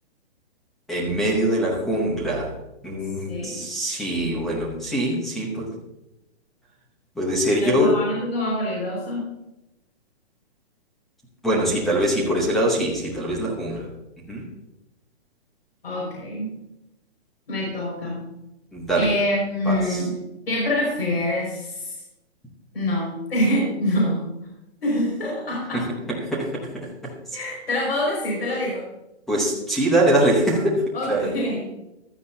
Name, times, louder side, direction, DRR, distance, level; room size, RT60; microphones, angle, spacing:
voice 1, 0.9-2.5 2.8-5.7 7.2-8.0 11.4-13.9 14.3-14.4 18.7-19.1 19.7-20.0 26.3-26.5 29.3-30.8 31.1-31.3, right 1 dB, ahead, -3 dB, 0.8 m, -23 dB
voice 2, 3.3-3.6 7.6-9.3 15.8-16.5 17.5-18.3 19.0-20.2 20.5-22.0 22.7-24.2 24.8-25.9 27.3-28.9 30.9-31.7, left 1 dB, 65° left, -3 dB, 5.2 m, -25 dB
15.5 x 12.0 x 2.7 m, 0.92 s
hypercardioid pair, 175°, 33 cm